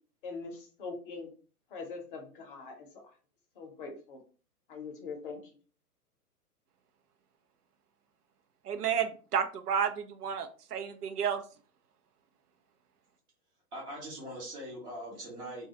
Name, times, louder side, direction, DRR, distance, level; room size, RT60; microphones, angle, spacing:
voice 1, 0.2-1.3 1.7-3.0 3.6-4.2 4.7-5.4, left 4 dB, 35° left, 3 dB, 0.6 m, -42 dB
voice 2, 8.6-11.4, right 7 dB, 75° right, 8 dB, 0.6 m, -31 dB
voice 3, 13.7-15.7, right 1 dB, 10° right, -4 dB, 0.4 m, -41 dB
2.3 x 2.2 x 2.7 m, 0.39 s
figure-of-eight pair, 115°, 46 cm